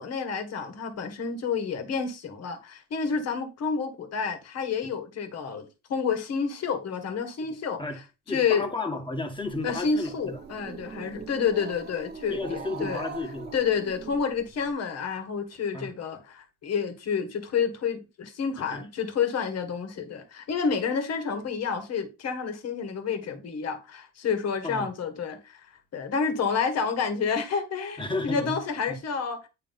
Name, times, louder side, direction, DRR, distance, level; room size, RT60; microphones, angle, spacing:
voice 1, 0.0-7.8 8.3-8.7 9.6-13.0 13.5-29.5, left 6 dB, 50° left, 1.7 m, -29 dB
voice 2, 8.3-10.4 12.3-13.6 15.7-15.9 18.6-18.8 24.6-24.9 28.0-28.6 28.9-29.0, left 2 dB, 15° left, 1.7 m, -33 dB
Growling, 9.3-14.7, right 5 dB, 30° right, 1.2 m, -42 dB
9.2 x 3.4 x 5.4 m
cardioid pair, 125°, 33 cm